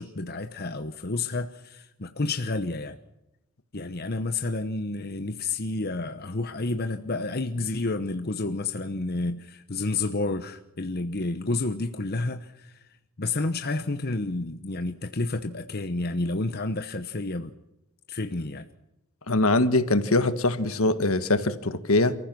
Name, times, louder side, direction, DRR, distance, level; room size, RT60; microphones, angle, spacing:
voice 1, 0.0-3.0 3.7-12.7 13.2-17.5 18.1-18.7, left 2 dB, 45° left, 1.0 m, -30 dB
voice 2, 19.3-22.2, left 2 dB, 70° left, 1.6 m, -22 dB
28.5 x 15.0 x 6.2 m
head